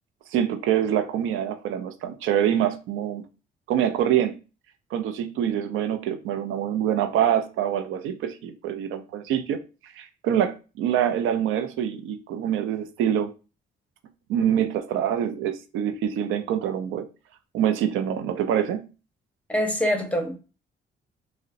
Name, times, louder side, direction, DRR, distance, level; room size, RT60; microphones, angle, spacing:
voice 1, 0.3-3.3 3.7-4.4 4.9-9.6 9.8-13.3 14.3-17.1 17.5-18.9, right 10 dB, 90° right, 0.4 m, -25 dB
voice 2, 19.5-20.4, equal, 5° left, 0.8 m, -24 dB
3.8 x 2.1 x 2.5 m
cardioid pair, 90°, 20 cm